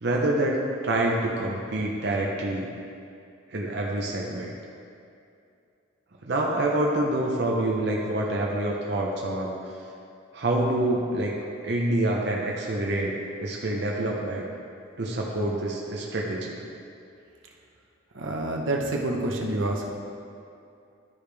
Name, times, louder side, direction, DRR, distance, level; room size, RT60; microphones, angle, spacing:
voice 1, 0.0-2.7 3.5-4.5 6.2-9.5 10.3-11.3 11.6-14.5 15.0-16.6, right 1 dB, 55° right, -2 dB, 0.8 m, -27 dB
voice 2, 18.1-19.9, right 2 dB, 80° right, 0 dB, 0.9 m, -27 dB
12.0 x 5.0 x 3.4 m, 2.6 s
head